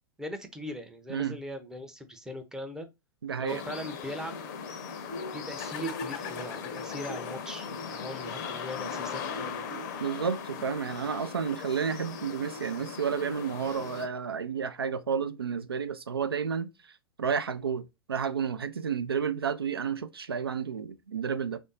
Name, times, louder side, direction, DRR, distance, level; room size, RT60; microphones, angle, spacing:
voice 1, 0.2-2.9 3.4-4.5 5.3-9.6, equal, 5° right, 0.6 m, -40 dB
voice 2, 3.2-3.6 10.0-16.7 17.2-21.6, right 6 dB, 75° right, 0.4 m, -31 dB
sound 1, 3.5-14.1, left 6 dB, 45° left, 0.6 m, -38 dB
3.4 x 2.6 x 3.9 m
figure-of-eight pair, 95°, 13 cm